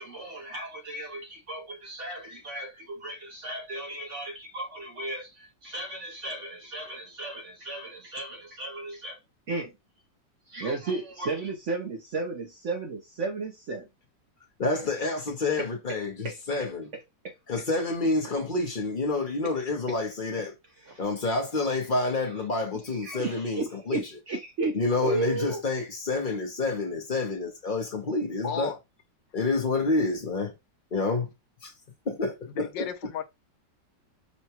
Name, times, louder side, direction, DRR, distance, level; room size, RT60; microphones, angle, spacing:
voice 1, 0.0-9.2 9.5-9.7 10.5-13.9 15.6-16.0 16.2-16.7 17.2-17.4 20.8-21.0 22.2-22.4 22.8-24.8 25.0-25.6, right 3 dB, 60° right, 0.8 m, -34 dB
voice 2, 14.6-16.9 17.5-20.5 21.0-24.0 24.7-28.7 29.3-30.5 30.9-31.3 31.6-31.7 32.1-32.9, left 3 dB, 40° left, 0.7 m, -28 dB
voice 3, 28.4-28.8 32.6-33.2, left 7 dB, 80° left, 1.4 m, -33 dB
5.6 x 2.2 x 2.9 m
omnidirectional pair, 2.0 m